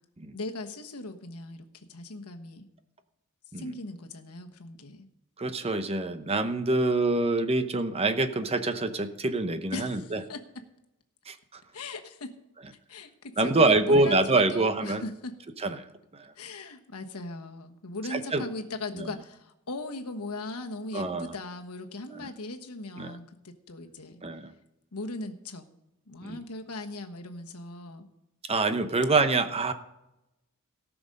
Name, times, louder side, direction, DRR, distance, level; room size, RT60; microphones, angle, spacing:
voice 1, 0.3-2.7 3.6-5.1 9.7-10.4 11.7-12.3 12.9-15.4 16.4-24.2 24.9-25.7 26.1-28.1, left 2 dB, 85° left, 5 dB, 1.3 m, -39 dB
voice 2, 5.4-10.2 11.3-11.4 13.4-15.0 15.6-15.8 16.1-16.2 18.1-18.4 20.9-21.3 22.1-22.3 23.0-23.1 24.2-24.5 26.2-26.4 28.5-29.7, right 2 dB, 25° right, 10 dB, 0.8 m, -25 dB
17.5 x 6.1 x 5.3 m, 0.90 s
head